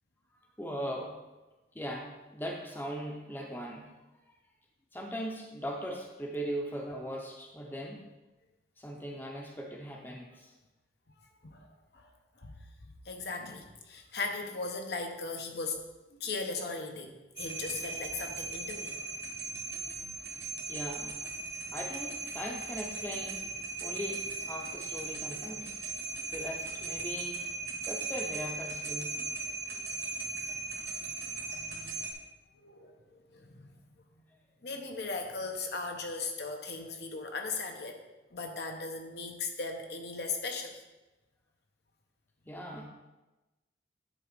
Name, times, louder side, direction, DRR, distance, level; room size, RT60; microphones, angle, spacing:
voice 1, 0.6-1.2 1.7-4.0 4.9-8.0 8.8-10.5 20.7-21.2 21.7-23.4 23.8-25.8 26.3-27.4 27.8-29.2 42.5-42.9, equal, 10° left, 0 dB, 0.7 m, -39 dB
voice 2, 13.0-15.8 16.1-19.1 23.9-24.0 30.8-31.9 32.5-33.7 34.6-38.0 38.3-40.8, left 4 dB, 65° left, 3 dB, 0.9 m, -38 dB
sound 1, 17.4-32.1, right 3 dB, 65° right, 1.5 m, -38 dB
10.0 x 3.7 x 5.2 m, 1.1 s
head